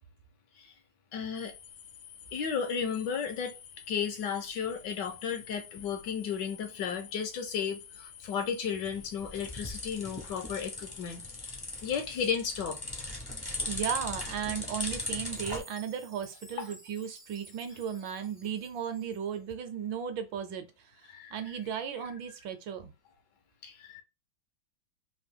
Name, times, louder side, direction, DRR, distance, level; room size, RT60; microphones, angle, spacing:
voice 1, 1.1-1.5 2.3-3.6 3.9-11.2 11.8-12.8 16.6-16.7 21.1-21.6 22.0-22.1 23.6-24.0, left 7 dB, 70° left, 1.1 m, -34 dB
sound 1, 1.3-12.3, left 8 dB, 85° left, 1.5 m, -51 dB
sound 2, 8.8-15.6, left 2 dB, 30° left, 0.4 m, -38 dB
voice 2, 13.7-20.7 21.3-22.9, right 8 dB, 75° right, 1.3 m, -35 dB
Chime, 15.3-19.5, right 3 dB, 55° right, 0.4 m, -54 dB
3.5 x 2.6 x 3.4 m
omnidirectional pair, 2.2 m